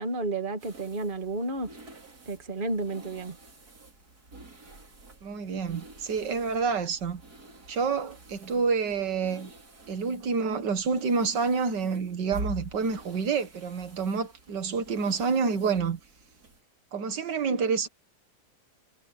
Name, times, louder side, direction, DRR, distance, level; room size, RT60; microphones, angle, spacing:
voice 1, 0.0-1.8 2.3-3.4, right 2 dB, 30° right, 1.9 m, -31 dB
sound 1, 0.6-16.6, right 2 dB, 65° right, 3.9 m, -47 dB
voice 2, 5.2-7.2 7.7-9.5 9.9-16.0 16.9-17.9, right 5 dB, 85° right, 2.2 m, -28 dB
omnidirectional pair, 1.8 m